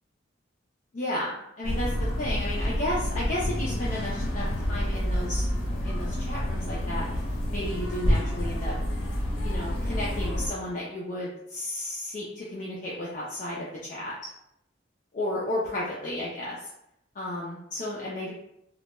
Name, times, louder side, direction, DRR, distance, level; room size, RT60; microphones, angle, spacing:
voice 1, 0.9-5.5 5.8-7.1 7.5-8.7 9.4-14.2 15.1-16.7 17.1-18.3, left 1 dB, 40° left, -6 dB, 0.4 m, -33 dB
sound 1, 1.6-10.5, equal, 90° left, 0.6 m, -28 dB
2.1 x 2.0 x 2.9 m, 0.80 s
head